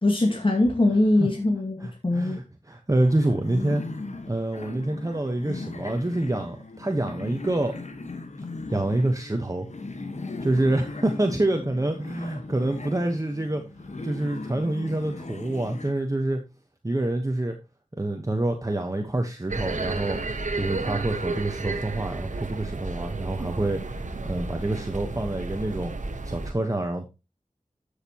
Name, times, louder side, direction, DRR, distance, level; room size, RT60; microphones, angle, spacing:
voice 1, 0.0-2.4, left 2 dB, 45° left, 2.2 m, -22 dB
voice 2, 1.8-3.8 4.2-7.7 8.7-9.7 10.4-13.6 14.0-16.4 16.8-17.6 18.0-20.2 20.5-25.9 26.2-27.1, right 1 dB, 25° right, 1.2 m, -27 dB
sound 1, 3.0-15.9, left 3 dB, 70° left, 1.5 m, -38 dB
sound 2, 19.5-26.5, right 3 dB, 90° right, 1.2 m, -32 dB
12.5 x 6.7 x 3.0 m
wide cardioid pair, 55°, 12 cm